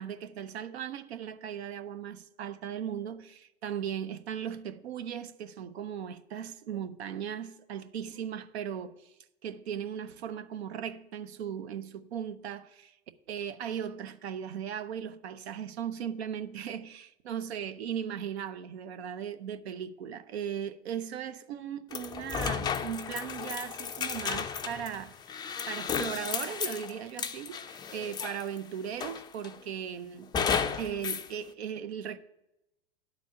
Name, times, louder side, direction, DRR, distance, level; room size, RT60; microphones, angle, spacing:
voice 1, 0.0-9.1 9.4-12.9 13.3-25.2 25.7-30.3 30.8-32.2, right 9 dB, 75° right, 0.7 m, -37 dB
sound 1, 21.9-28.6 29.0-29.6 30.3-31.3, left 7 dB, 15° left, 0.4 m, -34 dB
10.5 x 4.2 x 7.5 m
hypercardioid pair, 105°, 32 cm